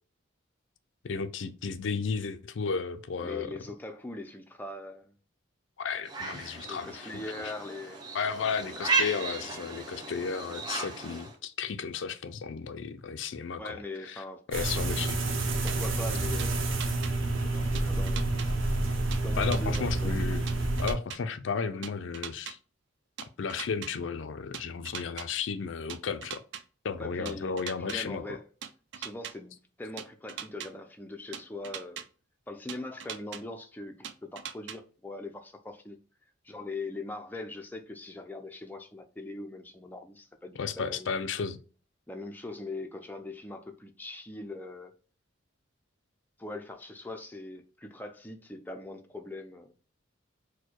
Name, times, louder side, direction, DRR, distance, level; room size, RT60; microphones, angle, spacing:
voice 1, 1.0-3.5 5.8-7.2 8.1-13.8 14.1-15.2 19.4-20.4 20.8-22.6 23.4-26.4 26.8-28.4 40.6-41.6, left 5 dB, 70° left, 0.4 m, -33 dB
voice 2, 3.2-5.1 6.7-8.1 13.6-14.4 15.6-16.9 17.4-18.4 19.2-20.2 25.0-25.1 27.0-28.4 28.9-32.0 32.5-36.0 36.4-41.1 42.1-44.9 46.4-49.7, left 2 dB, 10° left, 0.4 m, -41 dB
sound 1, 6.1-11.4, right 3 dB, 20° right, 0.8 m, -34 dB
sound 2, 14.5-20.9, right 2 dB, 90° right, 0.9 m, -29 dB
sound 3, 15.7-15.8 16.4-17.1 17.7-18.5 19.1-19.8 20.5-21.2 21.8-22.5 23.2-23.9 24.5-25.3 25.9-26.6 27.3-28.0 28.6-29.3 30.0-30.7 31.3-32.0 32.7-33.4 34.0-34.8, right 8 dB, 65° right, 0.4 m, -40 dB
4.3 x 2.2 x 4.5 m
head